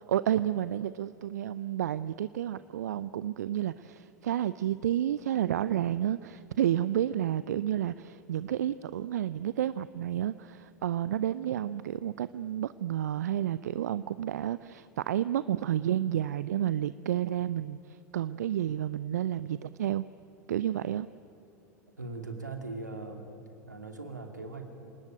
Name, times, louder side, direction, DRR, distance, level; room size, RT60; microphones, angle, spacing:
voice 1, 0.0-20.0 20.5-21.1, right 11 dB, 70° right, 16 dB, 0.5 m, -30 dB
voice 2, 21.9-23.3 23.7-24.9, right 3 dB, 90° right, 4 dB, 2.8 m, -40 dB
27.5 x 19.0 x 9.0 m, 2.6 s
figure-of-eight pair, 85°, 9 cm